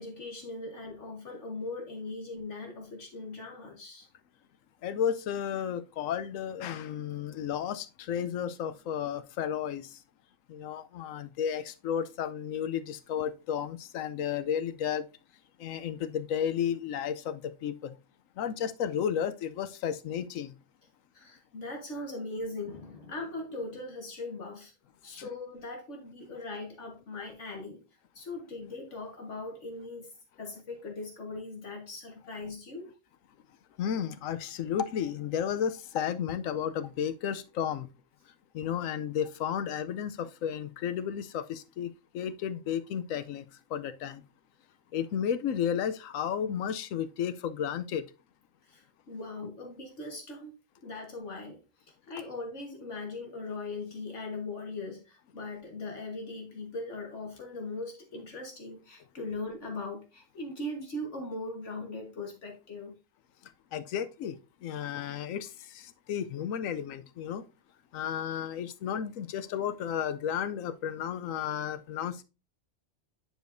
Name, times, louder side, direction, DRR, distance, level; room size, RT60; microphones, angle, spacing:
voice 1, 0.0-4.1 21.1-24.7 25.0-27.8 28.1-30.1 30.4-32.9 48.7-50.5 50.8-51.6 52.1-62.9, left 2 dB, 65° left, 1.7 m, -40 dB
voice 2, 4.8-10.0 10.5-15.1 15.6-18.0 18.4-20.5 25.2-25.3 33.8-37.9 38.3-44.2 44.9-48.1 63.7-67.4 67.9-72.2, left 8 dB, 85° left, 1.0 m, -33 dB
9.3 x 5.1 x 2.6 m
omnidirectional pair, 1.4 m